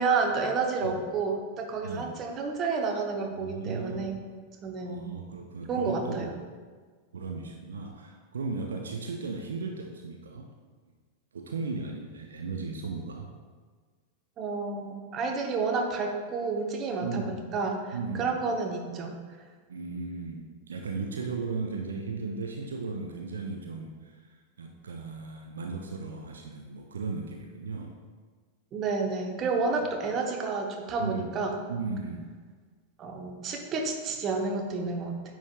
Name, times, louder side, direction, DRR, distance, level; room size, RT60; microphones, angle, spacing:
voice 1, 0.0-4.2 4.6-5.1 5.7-6.3 14.4-19.1 28.7-31.5 33.0-35.1, right 4 dB, 30° right, 3 dB, 0.8 m, -30 dB
voice 2, 3.3-4.0 4.8-6.5 7.1-10.5 11.3-13.3 17.0-17.4 17.9-18.3 19.7-24.2 24.6-27.9 31.0-31.3 31.7-32.2, right 4 dB, 70° right, 3 dB, 0.5 m, -36 dB
9.5 x 4.7 x 2.3 m, 1.5 s
figure-of-eight pair, 90°, 0 cm